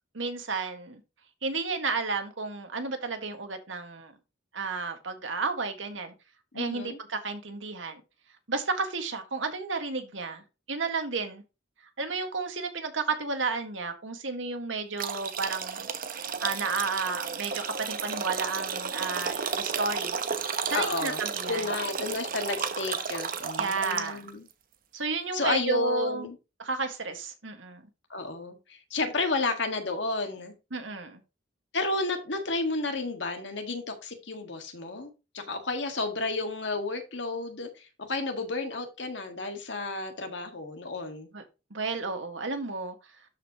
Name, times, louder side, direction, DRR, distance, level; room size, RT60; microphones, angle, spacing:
voice 1, 0.1-1.0 1.4-4.1 4.5-6.1 6.6-8.0 8.5-11.4 12.0-15.9 16.4-20.2 20.6-21.7 23.6-24.3 24.9-26.3 26.6-27.9 30.7-31.2 41.3-41.4 41.7-43.0, right 4 dB, 80° right, 1.8 m, -32 dB
voice 2, 6.5-7.0 20.7-24.4 25.3-26.4 28.1-30.5 31.7-41.3, left 3 dB, 65° left, 1.8 m, -32 dB
sound 1, 15.0-24.3, right 6 dB, 50° right, 1.0 m, -33 dB
12.5 x 5.4 x 3.0 m
head